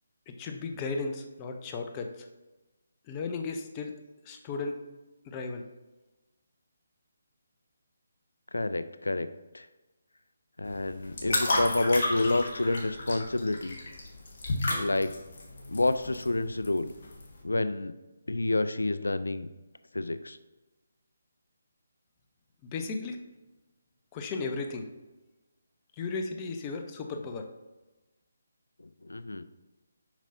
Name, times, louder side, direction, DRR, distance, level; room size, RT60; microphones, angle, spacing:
voice 1, 0.3-2.3 3.1-3.9 4.2-4.8 5.2-5.6 22.6-23.2 24.1-24.9 26.0-27.5, left 4 dB, 20° left, 4 dB, 0.6 m, -35 dB
voice 2, 8.5-9.3 9.5-9.7 10.6-13.8 14.8-15.1 15.7-16.9 17.4-17.9 18.3-19.5 19.9-20.4 29.1-29.4, left 2 dB, 80° left, 12 dB, 0.4 m, -28 dB
sound 1, 10.6-17.4, left 2 dB, 50° left, 1.4 m, -33 dB
7.2 x 5.4 x 2.6 m, 1.1 s
figure-of-eight pair, 150°, 0 cm